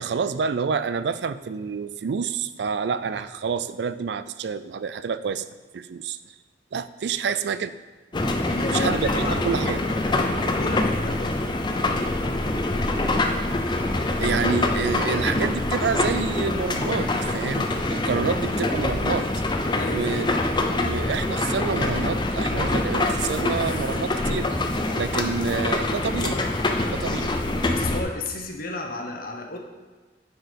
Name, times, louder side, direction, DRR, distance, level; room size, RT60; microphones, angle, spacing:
voice 1, 0.0-5.4 5.7-6.2 6.7-7.7 8.7-9.8 14.2-19.3 19.9-20.3 20.6-24.5 24.9-26.4 26.9-27.3, right 6 dB, 70° right, 14 dB, 0.4 m, -28 dB
sound 1, 8.1-28.0, left 2 dB, 25° left, 0.6 m, -25 dB
voice 2, 8.5-9.4 10.2-11.4 19.7-20.4 27.7-29.6, left 2 dB, 55° left, 3 dB, 0.9 m, -33 dB
9.4 x 4.7 x 5.2 m, 1.3 s
head